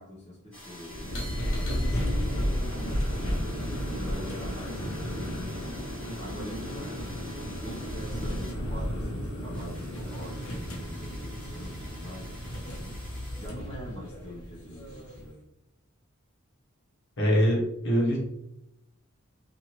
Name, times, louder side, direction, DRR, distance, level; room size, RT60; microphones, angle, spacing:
voice 1, 0.0-5.8 6.2-13.0 13.3-15.4, equal, 30° left, -7 dB, 0.7 m, -43 dB
sound 1, 0.5-14.0 14.3-15.3, left 1 dB, 5° left, 1.1 m, -48 dB
sound 2, 0.9-15.3, equal, 80° left, 0.8 m, -33 dB
voice 2, 17.2-18.2, equal, 60° left, -3 dB, 1.0 m, -23 dB
2.8 x 2.5 x 2.9 m, 0.82 s
head